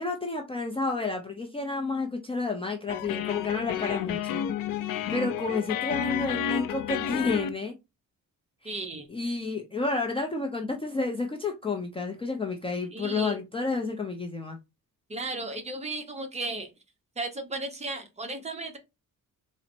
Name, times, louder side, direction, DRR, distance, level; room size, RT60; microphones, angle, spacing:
voice 1, 0.0-4.4 5.1-7.7 8.6-8.8 9.1-14.6, left 3 dB, 15° left, 0.4 m, -30 dB
sound 1, 2.9-7.5, left 10 dB, 75° left, 0.5 m, -31 dB
voice 2, 8.6-9.1 12.9-13.4 15.1-16.7 17.2-18.8, right 2 dB, 20° right, 0.8 m, -35 dB
4.0 x 2.0 x 4.2 m
cardioid pair, 145°, 33 cm